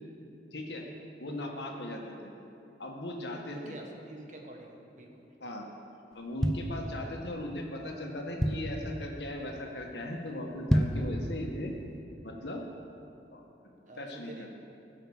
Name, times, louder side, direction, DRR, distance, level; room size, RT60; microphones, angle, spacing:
voice 1, 0.5-0.8 1.2-2.3 2.8-3.8 5.4-5.7 6.1-11.7 12.2-12.6 13.3-13.4 14.0-14.5, left 1 dB, 80° left, 1 dB, 1.6 m, -38 dB
voice 2, 3.5-5.2 13.8-14.5, right 2 dB, 45° right, 1 dB, 1.5 m, -48 dB
sound 1, 6.1-7.4 7.9-8.0 8.1-8.9 9.4-9.6 9.9-10.0 10.5-11.1 11.6-11.7, equal, 5° left, 0.6 m, -28 dB
15.5 x 5.8 x 7.3 m, 2.8 s
head